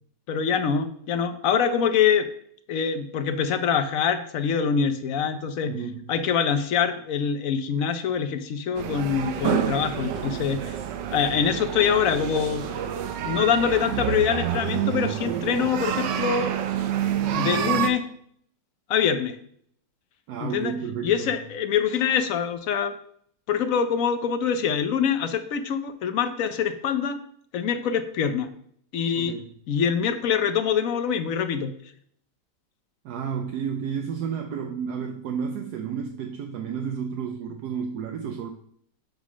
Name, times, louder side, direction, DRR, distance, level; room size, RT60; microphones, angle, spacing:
voice 1, 0.3-2.2 2.7-5.7 6.1-10.6 11.1-12.6 13.2-16.5 17.3-18.0 18.9-19.3 20.4-20.7 21.0-22.9 23.5-27.2 27.5-28.5 28.9-29.3 29.7-31.7, left 7 dB, 60° left, 9 dB, 1.0 m, -24 dB
voice 2, 5.6-6.1 20.3-21.4 29.1-29.5 33.0-38.5, right 7 dB, 75° right, 3 dB, 1.2 m, -31 dB
sound 1, 8.7-17.9, right 9 dB, 90° right, 1.4 m, -28 dB
7.4 x 3.7 x 6.0 m, 0.64 s
omnidirectional pair, 1.8 m